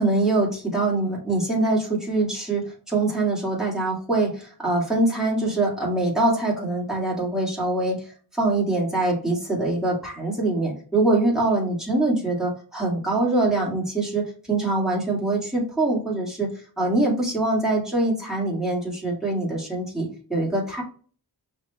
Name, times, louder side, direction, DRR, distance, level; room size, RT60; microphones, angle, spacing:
voice 1, 0.0-8.0 8.3-16.5 16.8-20.8, right 2 dB, ahead, -4 dB, 2.0 m, -24 dB
6.0 x 2.9 x 2.9 m, 0.41 s
wide cardioid pair, 105°, 40 cm